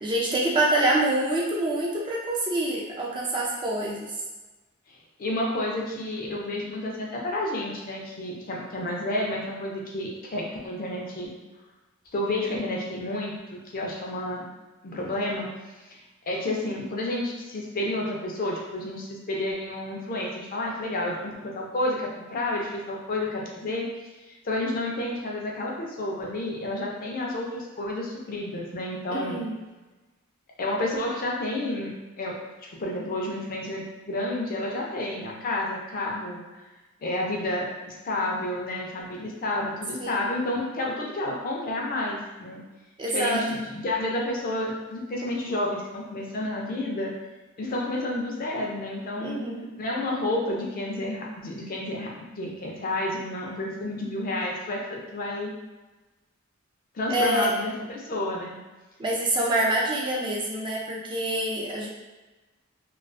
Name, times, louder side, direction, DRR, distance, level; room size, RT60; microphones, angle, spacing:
voice 1, 0.0-4.1 29.1-29.6 40.0-40.4 43.0-43.6 49.2-49.7 57.1-57.5 59.0-61.9, right 1 dB, 20° right, -3 dB, 0.3 m, -26 dB
voice 2, 5.2-11.3 12.1-14.5 14.8-15.5 15.9-23.9 24.4-29.4 30.6-32.4 32.6-36.6 37.0-42.6 43.1-47.1 47.6-49.5 49.8-55.5 56.9-58.6, left 1 dB, 40° left, -2 dB, 0.4 m, -30 dB
2.3 x 2.3 x 2.4 m, 1.2 s
head